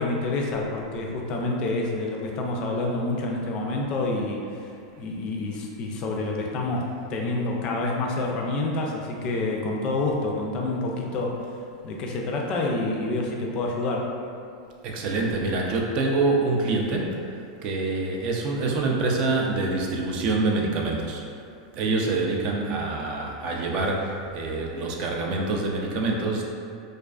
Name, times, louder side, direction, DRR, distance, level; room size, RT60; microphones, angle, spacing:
voice 1, 0.0-4.7 5.0-11.4 11.8-14.1, left 2 dB, 40° left, 0 dB, 0.3 m, -28 dB
voice 2, 14.8-21.2 21.7-26.4, right 3 dB, 45° right, 0 dB, 0.3 m, -26 dB
2.3 x 2.3 x 2.3 m, 2.5 s
supercardioid pair, 125°, 2 cm